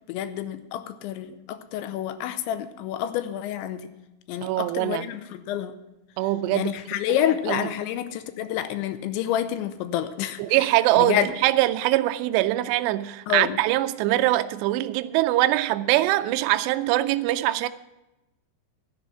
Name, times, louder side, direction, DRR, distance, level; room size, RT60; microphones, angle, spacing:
voice 1, 0.1-3.9 4.3-5.7 6.5-10.4 11.0-11.3 13.3-13.6, left 11 dB, 85° left, 2.9 m, -28 dB
voice 2, 4.4-5.0 6.2-6.7 7.5-7.7 10.4-17.7, right 15 dB, 85° right, 2.4 m, -23 dB
12.5 x 10.5 x 5.8 m
omnidirectional pair, 5.5 m